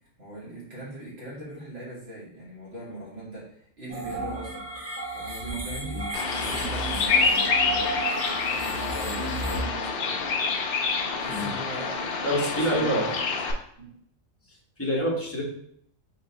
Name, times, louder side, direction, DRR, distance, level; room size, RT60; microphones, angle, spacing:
voice 1, 0.2-4.6 5.1-8.0 8.5-10.2 11.1-13.3 13.8-14.0, right 2 dB, 50° right, -8 dB, 2.3 m, -40 dB
sound 1, 3.9-9.6, right 2 dB, 15° right, 0.7 m, -33 dB
Bird vocalization bird call bird song, 6.1-13.5, left 4 dB, 60° left, 0.6 m, -27 dB
voice 2, 12.2-13.1 14.8-15.4, equal, 10° left, -2 dB, 0.9 m, -26 dB
4.4 x 2.8 x 3.9 m, 0.68 s
omnidirectional pair, 1.4 m